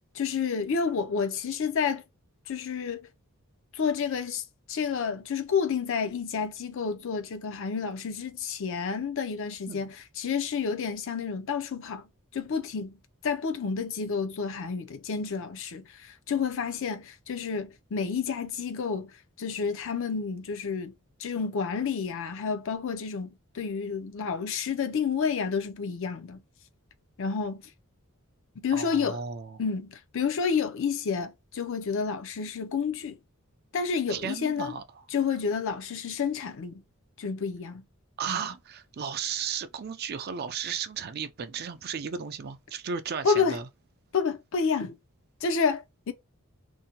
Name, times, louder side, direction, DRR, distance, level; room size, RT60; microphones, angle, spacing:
voice 1, 0.1-2.0 2.5-3.0 3.7-4.4 4.7-12.1 12.3-13.0 13.2-19.1 19.4-20.9 21.2-26.4 27.2-27.6 28.6-29.2 29.6-33.2 33.7-34.7 35.1-36.8 37.2-37.8 38.3-38.4 43.2-43.6 44.1-45.0 45.4-46.1, left 6 dB, 60° left, 0.5 m, -30 dB
voice 2, 28.7-29.6 34.1-35.1 38.2-43.7, right 7 dB, 45° right, 0.4 m, -35 dB
2.6 x 2.1 x 2.7 m
head